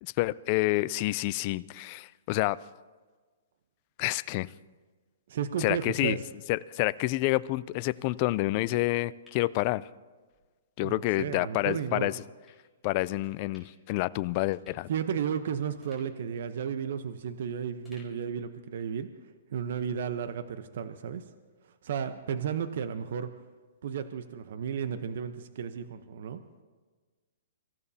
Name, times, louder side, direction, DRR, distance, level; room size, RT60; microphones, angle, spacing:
voice 1, 0.0-2.6 4.0-4.5 5.6-6.2 6.5-9.8 10.8-12.2 12.8-14.9, left 19 dB, 40° left, 17 dB, 0.4 m, -28 dB
voice 2, 5.3-6.3 10.8-12.1 14.9-19.1 19.5-21.2 21.8-23.3 23.8-26.4, right 7 dB, 65° right, 10 dB, 0.8 m, -33 dB
sound 1, 9.3-10.4 10.8-10.9 11.7-11.9 12.5-12.6 13.2-13.9 14.2-14.3 14.5-15.4 15.8-17.4 17.8-19.0 19.3-19.4, left 3 dB, ahead, 4.3 m, -62 dB
25.5 x 15.0 x 2.8 m, 1.4 s
hypercardioid pair, 145°, 0 cm